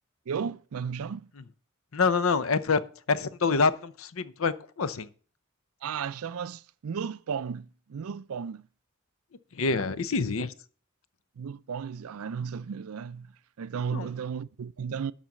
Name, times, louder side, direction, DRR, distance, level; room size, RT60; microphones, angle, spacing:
voice 1, 0.3-1.3 5.8-8.6 11.4-15.1, right 6 dB, 75° right, 0.4 m, -34 dB
voice 2, 1.9-2.8 3.1-5.1 9.5-10.5 13.9-14.1, left 4 dB, 65° left, 0.7 m, -26 dB
12.0 x 4.1 x 7.5 m
head